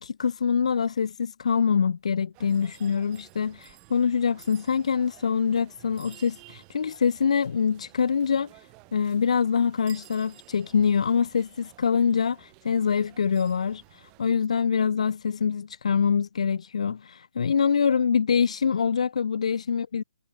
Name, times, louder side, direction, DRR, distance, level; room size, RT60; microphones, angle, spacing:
voice 1, 0.0-20.0, left 6 dB, 55° left, 0.4 m, -25 dB
sound 1, 2.3-14.2, right 31 dB, 15° right, 4.4 m, -54 dB
hypercardioid pair, 175°, 4 cm